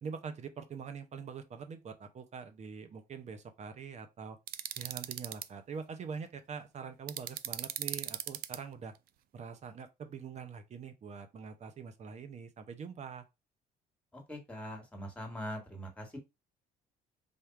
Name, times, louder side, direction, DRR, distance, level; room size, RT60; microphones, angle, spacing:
voice 1, 0.0-4.4 4.8-8.9 9.3-13.3, right 6 dB, 40° right, 0.8 m, -44 dB
sound 1, 4.5-5.5 7.1-8.6, right 12 dB, 60° right, 0.4 m, -38 dB
voice 2, 14.1-16.2, equal, 5° left, 1.6 m, -42 dB
3.6 x 2.6 x 4.5 m
cardioid pair, 110°, 17 cm